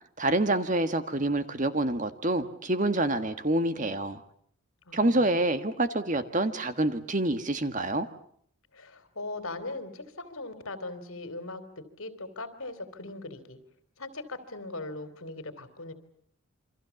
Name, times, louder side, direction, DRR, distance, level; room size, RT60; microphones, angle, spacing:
voice 1, 0.2-4.2 4.9-8.1, right 2 dB, 35° right, 10 dB, 1.6 m, -27 dB
voice 2, 4.9-5.4 8.7-13.6 14.0-15.9, left 2 dB, 70° left, 11 dB, 3.3 m, -40 dB
28.5 x 25.0 x 7.1 m, 0.66 s
head